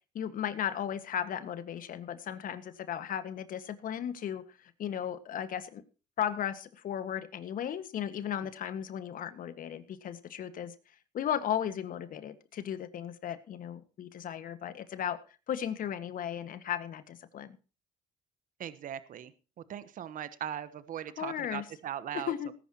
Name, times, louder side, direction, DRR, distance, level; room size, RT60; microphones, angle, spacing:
voice 1, 0.1-5.8 6.2-10.7 11.1-15.2 15.5-17.6 21.2-21.6 22.1-22.5, left 9 dB, 55° left, 12 dB, 1.7 m, -35 dB
voice 2, 18.6-19.3 19.7-22.5, right 10 dB, 55° right, 14 dB, 1.2 m, -39 dB
19.0 x 10.5 x 3.0 m, 0.33 s
supercardioid pair, 75°, 17 cm